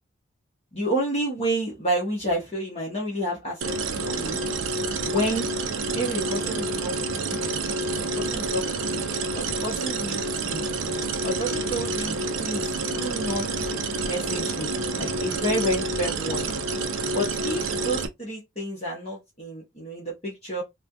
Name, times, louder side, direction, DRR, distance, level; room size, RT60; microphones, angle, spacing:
voice 1, 0.7-3.8 4.0-4.7 5.0-5.5 5.9-7.4 7.9-9.0 9.3-10.6 11.2-13.4 14.0-16.6 17.1-20.6, right 1 dB, 30° left, 1.1 m, -30 dB
sound 1, 3.6-18.1, right 3 dB, 75° right, 0.5 m, -28 dB
3.3 x 2.3 x 2.7 m
head